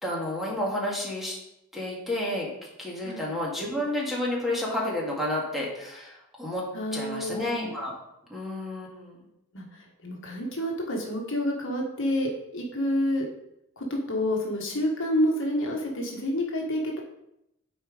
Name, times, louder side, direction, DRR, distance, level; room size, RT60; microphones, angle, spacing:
voice 1, 0.0-1.4 1.7-2.5 2.8-6.6 6.9-7.9 8.3-9.3, left 1 dB, ahead, -4 dB, 1.9 m, -30 dB
voice 2, 6.7-7.4 9.5-13.3 13.8-17.0, left 1 dB, 60° left, 0 dB, 1.5 m, -28 dB
8.7 x 4.5 x 5.1 m, 0.84 s
head